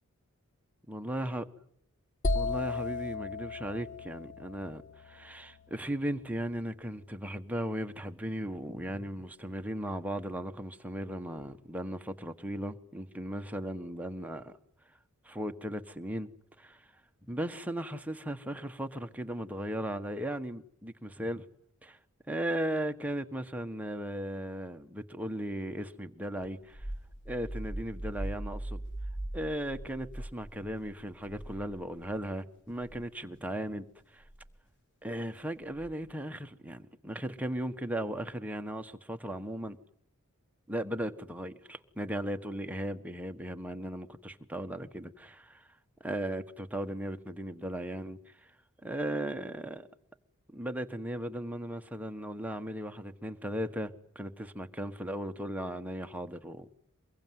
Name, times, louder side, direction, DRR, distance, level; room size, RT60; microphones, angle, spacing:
voice 1, 0.9-1.4 2.3-14.6 15.2-16.3 16.6-16.8 17.3-21.4 21.8-22.0 22.3-26.9 27.2-28.8 29.3-33.9 34.1-34.2 35.0-39.8 40.7-45.7 46.0-48.5 48.8-49.9 50.5-56.7, right 1 dB, 5° right, 1.4 m, -37 dB
sound 1, 2.2-6.0, left 3 dB, 35° left, 1.0 m, -35 dB
sound 2, 26.4-32.3 32.7-33.0 34.2-34.5 35.7-36.1, right 1 dB, 55° left, 4.6 m, -41 dB
24.0 x 22.5 x 9.4 m
head